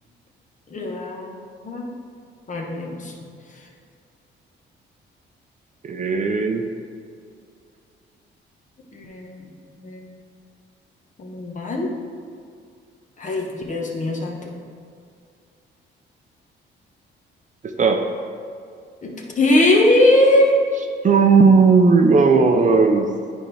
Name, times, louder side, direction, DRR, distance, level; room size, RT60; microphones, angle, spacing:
voice 1, 0.7-1.9 2.5-3.1 8.9-9.5 9.8-10.0 11.2-11.9 13.2-14.5 19.0-20.6, left 1 dB, 40° left, 0 dB, 1.2 m, -20 dB
voice 2, 5.8-6.6 17.6-18.0 21.0-23.1, right 4 dB, 40° right, 4 dB, 0.6 m, -15 dB
8.9 x 4.4 x 3.4 m, 2.3 s
cardioid pair, 90°, 20 cm